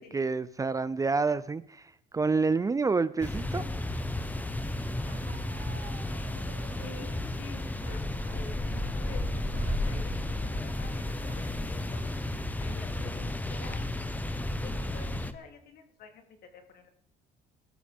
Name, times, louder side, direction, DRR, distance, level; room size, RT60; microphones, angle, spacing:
voice 1, 0.0-1.8 2.1-3.7, right 4 dB, 20° right, 0.6 m, -28 dB
sound 1, 3.2-15.3, left 1 dB, 10° left, 1.1 m, -33 dB
Bark, 5.0-7.2 7.8-8.6 8.9-9.1 9.5-9.8 11.2-11.5 12.1-12.2 12.5-12.9, right 10 dB, 90° right, 1.8 m, -51 dB
voice 2, 6.8-12.1 12.6-13.8 14.5-16.9, left 5 dB, 65° left, 3.2 m, -49 dB
19.5 x 13.0 x 3.6 m
cardioid pair, 110°, 17 cm